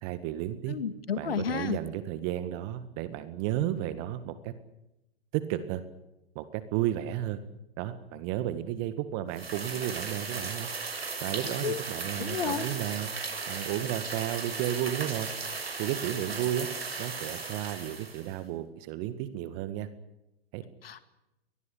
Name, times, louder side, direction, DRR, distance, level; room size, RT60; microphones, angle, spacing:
voice 1, 0.0-0.8 1.2-4.5 5.3-5.8 6.4-7.4 7.8-10.7 11.2-13.1 13.5-15.3 15.8-16.7 17.0-19.9 20.5-20.6, right 12 dB, 35° right, 12 dB, 1.9 m, -33 dB
voice 2, 0.7-1.8 11.6-11.8 12.2-12.7 20.8-21.0, left 7 dB, 70° left, 11 dB, 2.1 m, -31 dB
sound 1, 9.3-18.3, right 4 dB, 80° right, 6.9 m, -36 dB
23.5 x 19.5 x 8.5 m, 0.90 s
figure-of-eight pair, 115°, 31 cm